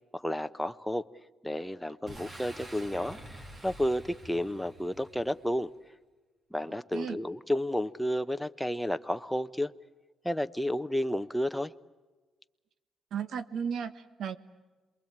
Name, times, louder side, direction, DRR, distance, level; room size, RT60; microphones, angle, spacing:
voice 1, 0.1-1.1 1.4-5.7 6.5-9.7 10.2-11.7, equal, 5° left, 0.9 m, -31 dB
Boom, 2.1-5.7, right 1 dB, 30° right, 3.1 m, -47 dB
voice 2, 13.1-14.4, right 7 dB, 70° right, 1.5 m, -34 dB
27.5 x 22.5 x 8.9 m
cardioid pair, 90°, 0 cm